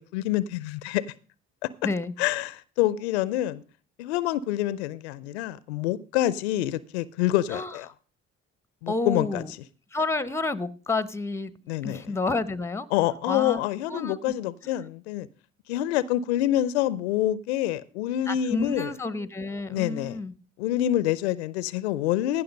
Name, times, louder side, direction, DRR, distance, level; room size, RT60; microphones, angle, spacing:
voice 1, 0.1-1.0 1.6-1.7 2.2-3.6 4.0-7.9 8.8-9.4 11.7-12.1 12.9-15.3 15.7-18.9 19.7-20.2 20.6-22.4, left 13 dB, 90° left, 0.5 m, -27 dB
voice 2, 1.8-2.1 7.5-7.8 8.9-9.5 9.9-11.5 11.8-12.9 13.3-13.6 13.9-14.3 18.3-20.3, left 3 dB, 10° left, 0.8 m, -30 dB
15.5 x 5.9 x 5.2 m
hypercardioid pair, 55°, 32 cm